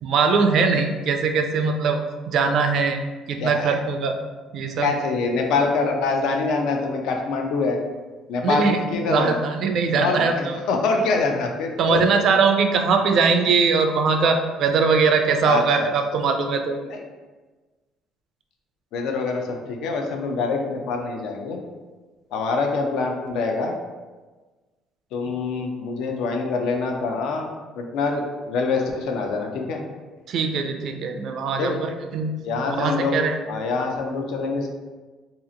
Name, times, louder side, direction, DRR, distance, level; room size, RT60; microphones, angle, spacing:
voice 1, 0.0-2.0 2.3-3.0 3.3-4.2 4.5-4.9 8.4-8.8 9.1-10.6 11.8-16.8 30.3-32.3 32.7-33.4, right 5 dB, 60° right, 5 dB, 0.4 m, -21 dB
voice 2, 3.4-3.7 4.8-7.8 8.3-9.3 10.0-12.0 15.4-15.9 16.9-17.0 18.9-21.6 22.3-23.7 25.1-27.5 27.7-29.8 31.6-31.7 32.4-33.2 33.5-34.7, left 4 dB, 75° left, 2 dB, 0.5 m, -25 dB
2.8 x 2.4 x 3.8 m, 1.3 s
cardioid pair, 130°, 0 cm